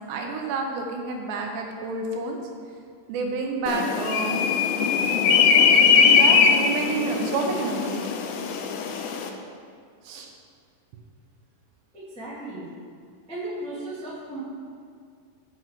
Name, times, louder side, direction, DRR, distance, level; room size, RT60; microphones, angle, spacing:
voice 1, 0.1-2.4 3.1-4.4 5.8-8.1 10.0-10.3, right 4 dB, 75° right, 1 dB, 2.9 m, -29 dB
sound 1, 3.7-9.3, left 6 dB, 80° left, 2.6 m, -20 dB
voice 2, 11.9-12.7 13.3-14.4, right 2 dB, 5° left, -9 dB, 0.9 m, -35 dB
7.8 x 6.1 x 7.3 m, 2.2 s
omnidirectional pair, 5.2 m